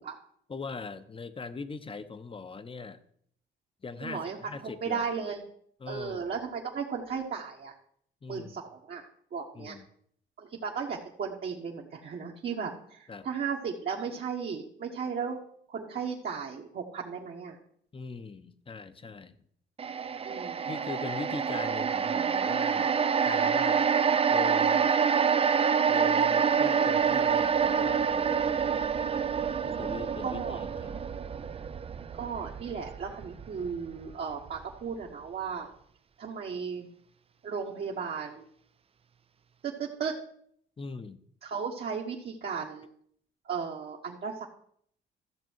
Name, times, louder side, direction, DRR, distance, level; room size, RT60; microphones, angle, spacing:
voice 1, 0.5-3.0 3.8-5.1 5.8-6.3 8.2-8.6 9.5-9.9 13.1-13.3 17.9-19.4 20.7-23.0 23.2-23.9 24.3-24.9 25.9-28.6 29.6-31.1 40.8-41.2, left 4 dB, 25° left, 12 dB, 0.9 m, -41 dB
voice 2, 4.0-5.4 5.9-7.7 8.3-9.0 9.3-9.8 10.4-15.4 15.7-17.6 20.2-20.7 30.2-30.6 32.1-35.7 36.2-36.9 37.4-38.5 39.6-40.2 41.4-42.9 43.4-44.5, right 6 dB, 55° right, -1 dB, 1.4 m, -35 dB
sound 1, 19.8-34.1 34.5-34.6, right 7 dB, 30° right, 0.4 m, -27 dB
13.5 x 6.8 x 4.6 m, 0.66 s
cardioid pair, 90°, 20 cm